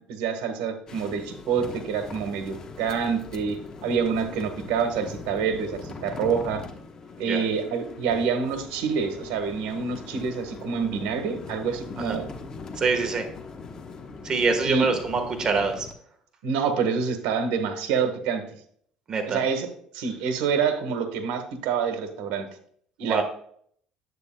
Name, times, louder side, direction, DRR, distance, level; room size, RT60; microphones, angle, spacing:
voice 1, 0.1-6.6 7.2-12.3 14.6-14.9 16.4-18.4 19.3-19.7 19.9-22.5 23.0-23.2, right 6 dB, 85° right, 7 dB, 1.3 m, -27 dB
sound 1, 0.9-15.9, left 4 dB, 35° left, 1.0 m, -41 dB
voice 2, 12.8-13.3 14.2-15.9 19.1-19.4 23.0-23.2, right 4 dB, 35° right, 5 dB, 1.3 m, -25 dB
9.8 x 8.1 x 2.2 m, 0.62 s
cardioid pair, 110°, 2 cm